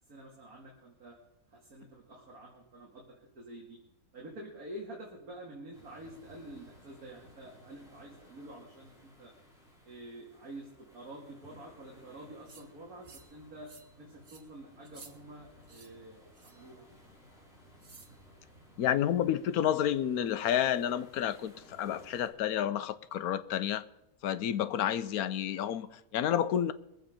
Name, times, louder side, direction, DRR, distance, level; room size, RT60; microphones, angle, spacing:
voice 1, 0.1-1.2 1.5-3.8 4.1-9.3 9.8-13.7 14.0-16.9, right 1 dB, 70° right, 2.6 m, -48 dB
sound 1, 5.7-22.3, equal, ahead, 3.8 m, -58 dB
sound 2, 12.5-12.6 13.0-13.3 13.7-13.9 14.2-14.4 14.8-15.1 15.6-15.9 16.3-16.7 17.8-18.1, right 4 dB, 40° right, 1.5 m, -54 dB
voice 2, 18.8-23.9 24.2-26.7, left 10 dB, 75° left, 1.1 m, -30 dB
22.0 x 7.9 x 5.1 m
omnidirectional pair, 1.6 m